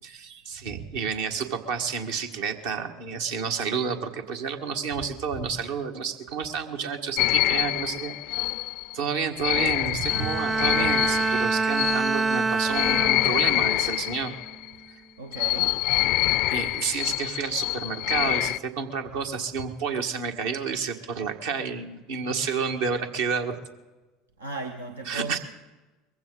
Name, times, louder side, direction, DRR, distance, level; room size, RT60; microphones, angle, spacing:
voice 1, 0.0-8.4 8.9-14.3 16.5-23.6 25.1-25.4, right 6 dB, 70° right, 1.6 m, -30 dB
sound 1, 7.2-14.7 15.3-18.6, left 18 dB, 60° left, 0.4 m, -26 dB
Bowed string instrument, 10.1-13.7 14.1-14.5, right 4 dB, 20° right, 0.4 m, -26 dB
voice 2, 15.2-15.8 24.4-25.4, right 3 dB, 90° right, 0.8 m, -36 dB
22.5 x 15.5 x 3.9 m
hypercardioid pair, 75°, 0 cm